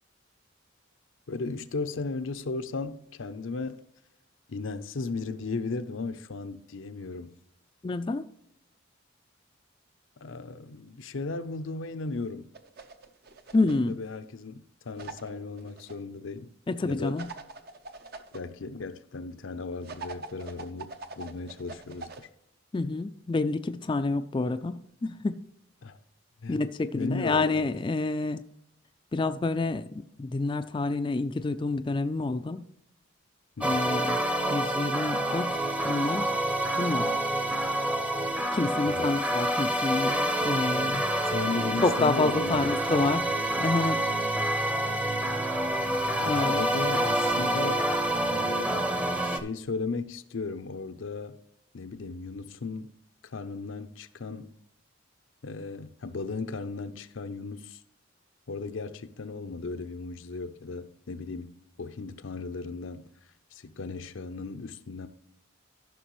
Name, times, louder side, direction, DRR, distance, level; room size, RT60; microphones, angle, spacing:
voice 1, 1.3-3.8 4.5-7.4 10.2-12.5 13.9-16.5 16.8-17.2 18.3-22.3 25.8-26.0 26.4-26.6 26.9-27.7 33.6-33.9 38.9-39.1 41.2-43.3 46.2-48.0 48.3-51.4 51.7-52.9 53.2-54.6 55.4-57.8 58.5-63.1 63.5-65.1, left 3 dB, 75° left, 0.6 m, -36 dB
voice 2, 7.8-8.3 13.5-14.0 16.7-17.3 22.7-25.4 26.5-28.4 29.1-32.7 33.6-34.2 34.5-36.3 36.8-37.1 38.5-41.0 41.8-43.3 43.6-44.0 46.2-46.6, left 3 dB, 25° left, 0.3 m, -28 dB
sound 1, 12.5-13.9 15.0-15.9 17.2-18.4 19.8-22.3, right 3 dB, 50° right, 0.7 m, -43 dB
sound 2, 33.6-49.4, right 1 dB, 5° right, 0.7 m, -27 dB
14.0 x 6.0 x 3.1 m
head